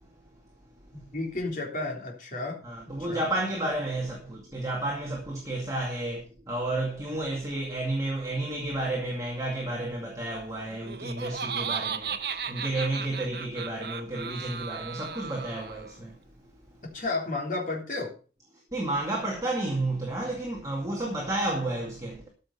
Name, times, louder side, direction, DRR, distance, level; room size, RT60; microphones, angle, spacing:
voice 1, 0.9-2.6 2.8-3.3 16.8-18.1, left 2 dB, 45° left, 3.5 m, -32 dB
voice 2, 2.6-16.2 18.7-22.3, right 1 dB, 20° right, 2.2 m, -31 dB
Laughter, 10.7-15.9, right 7 dB, 65° right, 1.0 m, -35 dB
14.0 x 6.5 x 5.4 m
head